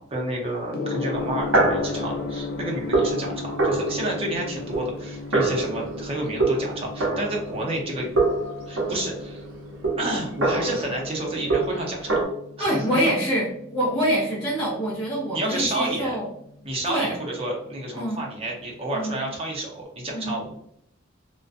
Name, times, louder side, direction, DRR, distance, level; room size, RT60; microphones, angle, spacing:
voice 1, 0.0-8.1 8.7-9.5 10.0-12.2 12.6-12.8 15.3-16.1 16.6-20.6, right 1 dB, 30° right, -2 dB, 0.6 m, -30 dB
Gong, 0.7-19.7, left 4 dB, 50° left, 0.3 m, -37 dB
sound 1, 1.1-7.9 8.2-12.2, right 2 dB, 70° right, 0.7 m, -26 dB
voice 2, 12.6-16.3 16.9-17.2 17.9-18.3 18.9-19.3 20.1-20.4, equal, 20° left, -9 dB, 0.7 m, -25 dB
2.4 x 2.2 x 2.5 m, 0.71 s
head